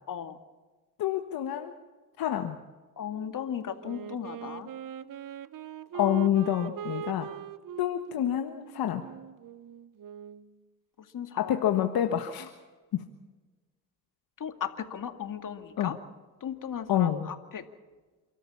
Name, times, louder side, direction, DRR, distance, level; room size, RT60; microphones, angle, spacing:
voice 1, 0.1-0.4 3.0-4.7 5.9-6.1 11.1-11.5 14.4-16.0 16.4-17.6, left 8 dB, 60° left, 7 dB, 2.3 m, -36 dB
voice 2, 1.0-1.7 2.2-2.6 6.0-7.3 7.8-9.0 11.4-12.5 12.9-13.0 15.8-15.9 16.9-17.3, left 11 dB, 75° left, 5 dB, 1.5 m, -27 dB
Wind instrument woodwind instrument, 3.8-10.5, right 9 dB, 60° right, 1.0 m, -41 dB
29.0 x 13.0 x 7.2 m, 1.3 s
supercardioid pair, 60°, 37 cm